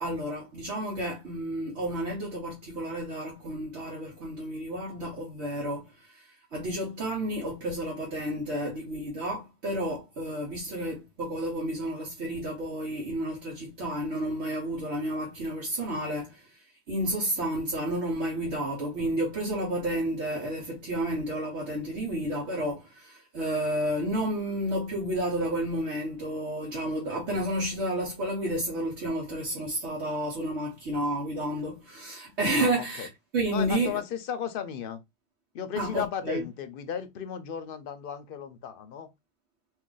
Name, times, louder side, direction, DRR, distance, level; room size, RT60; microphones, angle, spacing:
voice 1, 0.0-34.0 35.8-36.4, right 1 dB, 75° right, 1.2 m, -31 dB
voice 2, 32.6-33.1 33.5-35.0 35.5-39.1, left 8 dB, 60° left, 0.7 m, -35 dB
2.6 x 2.6 x 3.7 m
omnidirectional pair, 1.2 m